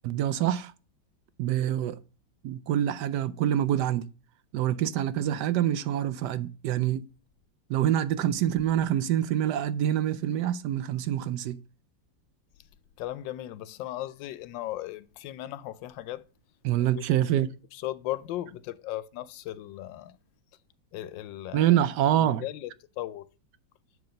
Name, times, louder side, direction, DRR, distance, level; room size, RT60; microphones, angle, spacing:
voice 1, 0.0-0.7 1.4-2.0 2.4-4.1 4.5-7.1 7.7-11.6 16.6-17.5 21.5-22.4, right 11 dB, 75° right, 1.1 m, -26 dB
voice 2, 13.0-16.2 16.9-17.0 17.7-20.2 20.9-21.8 22.2-22.7 23.0-23.2, left 14 dB, 80° left, 1.3 m, -37 dB
8.0 x 4.8 x 5.1 m
omnidirectional pair, 2.1 m